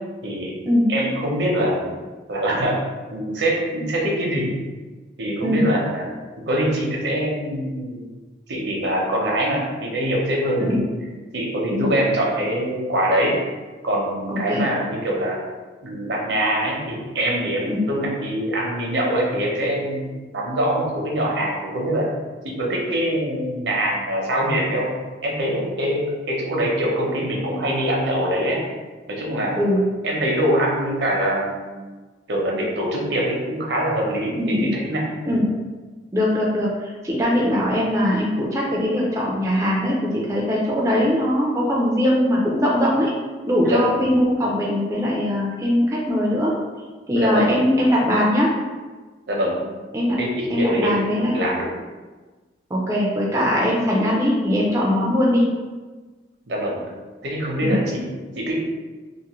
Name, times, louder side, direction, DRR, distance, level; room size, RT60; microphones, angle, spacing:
voice 1, 0.2-0.5 0.9-1.9 2.3-2.8 3.1-4.6 5.2-6.1 6.5-8.1 8.5-10.9 11.3-13.4 13.8-15.4 15.8-22.1 22.4-24.9 25.2-28.6 29.1-29.6 30.0-31.7 32.3-35.0 43.6-44.1 47.2-47.5 49.3-49.6 50.2-51.6 56.5-56.8 57.2-58.5, right 1 dB, 75° right, -2 dB, 0.7 m, -24 dB
voice 2, 14.3-14.7 17.7-17.8 29.6-29.8 34.4-34.7 35.3-35.5 36.1-43.1 43.5-46.5 47.1-48.5 49.9-50.2 50.5-51.3 52.7-55.5 57.6-57.8, left 1 dB, 15° right, -4 dB, 0.4 m, -21 dB
2.5 x 2.5 x 2.9 m, 1.3 s
head